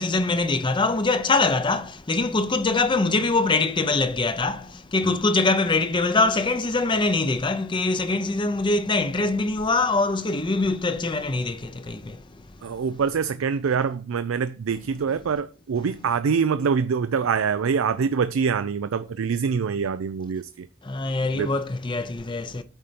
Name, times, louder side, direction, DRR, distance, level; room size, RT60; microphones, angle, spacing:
voice 1, 0.0-12.2 20.8-22.6, left 3 dB, 25° left, 0.6 m, -23 dB
voice 2, 12.6-20.7 21.3-21.5, right 6 dB, 85° right, 0.4 m, -25 dB
9.1 x 4.3 x 5.0 m
head